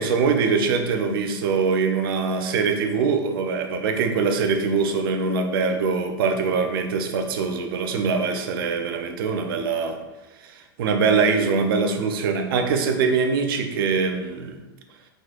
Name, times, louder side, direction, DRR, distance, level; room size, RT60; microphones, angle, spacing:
voice 1, 0.0-10.0 10.5-14.6, right 5 dB, 75° right, 5 dB, 0.6 m, -23 dB
4.5 x 3.9 x 2.5 m, 1.1 s
supercardioid pair, 130°, 12 cm